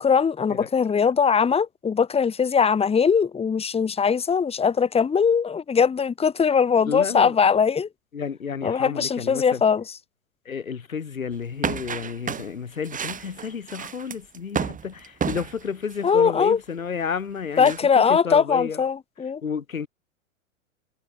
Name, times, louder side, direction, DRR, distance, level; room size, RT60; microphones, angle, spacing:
voice 1, 0.0-7.9 8.6-9.8 16.0-16.6 17.6-19.4, left 6 dB, 15° left, 2.5 m, -21 dB
voice 2, 6.8-7.4 8.1-9.6 10.5-18.8 19.4-19.9, left 6 dB, 85° left, 3.9 m, -31 dB
sound 1, 11.6-16.1 17.6-17.8, right 7 dB, 20° right, 5.2 m, -31 dB
hypercardioid pair, 110°, 40 cm